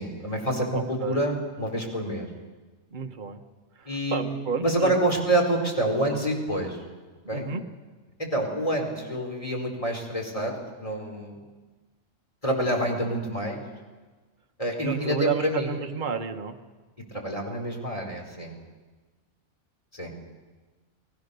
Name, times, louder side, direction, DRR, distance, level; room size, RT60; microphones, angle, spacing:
voice 1, 0.0-2.3 3.9-6.8 7.3-7.5 8.2-10.5 10.8-11.4 12.4-13.6 14.6-15.7 17.1-18.5 19.9-20.1, right 1 dB, 25° left, 1 dB, 4.4 m, -27 dB
voice 2, 0.7-1.2 2.9-3.4 3.7-5.0 7.3-7.6 14.8-16.6, right 6 dB, 35° right, 5 dB, 1.3 m, -31 dB
29.0 x 20.0 x 6.8 m, 1.3 s
omnidirectional pair, 1.5 m